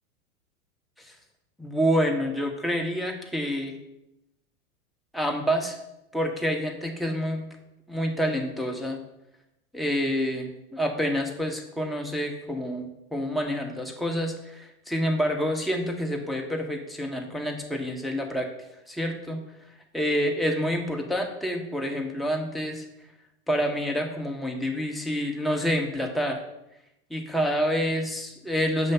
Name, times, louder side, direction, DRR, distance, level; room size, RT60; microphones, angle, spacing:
voice 1, 1.6-3.8 5.1-5.8 6.1-7.5 7.9-9.0 9.7-18.5 18.9-19.4 19.9-22.9 23.5-26.4 27.1-28.9, equal, ahead, 1 dB, 0.7 m, -28 dB
6.8 x 3.0 x 5.4 m, 0.87 s
hypercardioid pair, 120°, 36 cm